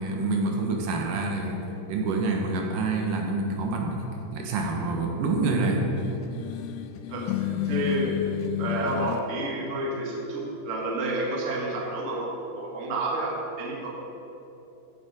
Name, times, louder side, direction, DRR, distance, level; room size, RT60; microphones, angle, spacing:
voice 1, 0.0-1.6 1.9-4.1 4.3-5.9, right 3 dB, 75° right, 1 dB, 2.8 m, -27 dB
sound 1, 6.0-9.2, left 11 dB, 80° left, 1.9 m, -31 dB
voice 2, 7.1-8.1 8.6-14.1, right 2 dB, 30° right, -2 dB, 1.5 m, -30 dB
15.0 x 8.2 x 5.0 m, 2.8 s
omnidirectional pair, 3.9 m